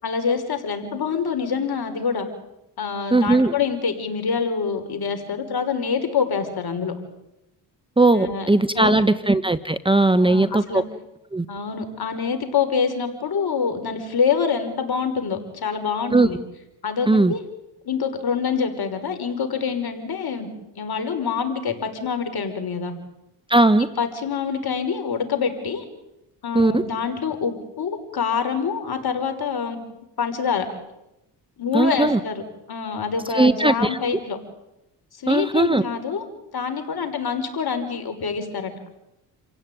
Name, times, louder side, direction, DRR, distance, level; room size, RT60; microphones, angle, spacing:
voice 1, 0.0-2.3 2.8-6.9 8.2-8.5 8.7-8.9 10.2-10.8 11.5-16.4 16.8-17.4 17.8-20.5 20.8-22.9 23.8-25.8 26.4-29.8 30.2-30.7 31.6-32.4 32.7-34.4 35.1-36.2 36.5-38.7, left 6 dB, 50° left, 7 dB, 5.8 m, -26 dB
voice 2, 3.1-3.5 8.0-10.8 11.3-11.5 16.1-16.3 17.1-17.3 23.5-23.9 26.5-26.8 31.7-32.2 33.3-34.0 35.3-35.8, right 2 dB, 10° right, 12 dB, 1.2 m, -18 dB
28.5 x 16.5 x 9.5 m, 0.92 s
supercardioid pair, 60°, 47 cm